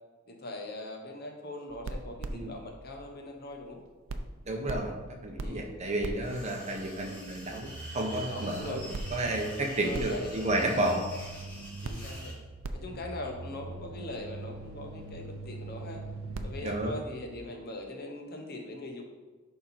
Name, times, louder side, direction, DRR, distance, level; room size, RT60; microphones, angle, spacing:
voice 1, 0.3-3.8 5.3-5.7 8.3-8.8 9.6-10.6 11.8-12.4 12.7-16.0 16.4-19.0, left 1 dB, 50° left, 3 dB, 1.1 m, -41 dB
sound 1, 1.7-3.8 4.1-17.6, right 2 dB, 75° right, 0.6 m, -42 dB
voice 2, 4.5-4.9 5.2-8.8 9.1-11.0 16.6-16.9, right 1 dB, 35° right, 1 dB, 1.2 m, -31 dB
sound 2, 6.2-12.4, equal, 10° left, 2.4 m, -47 dB
11.0 x 3.8 x 4.4 m, 1.3 s
head